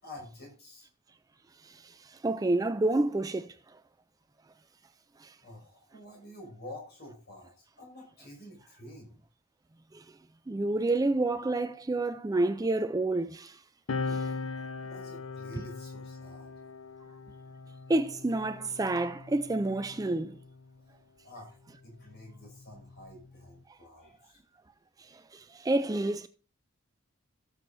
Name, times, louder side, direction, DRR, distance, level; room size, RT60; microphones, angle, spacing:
voice 1, 0.0-0.9 5.4-9.2 14.8-16.5 21.2-24.4, left 1 dB, 50° left, 5.8 m, -49 dB
voice 2, 2.2-3.5 10.5-13.5 14.1-14.3 17.9-20.3 25.3-26.3, right 2 dB, 15° right, 0.3 m, -28 dB
sound 1, 13.9-20.8 21.8-23.6, left 4 dB, 70° left, 0.7 m, -40 dB
17.5 x 7.2 x 2.6 m
head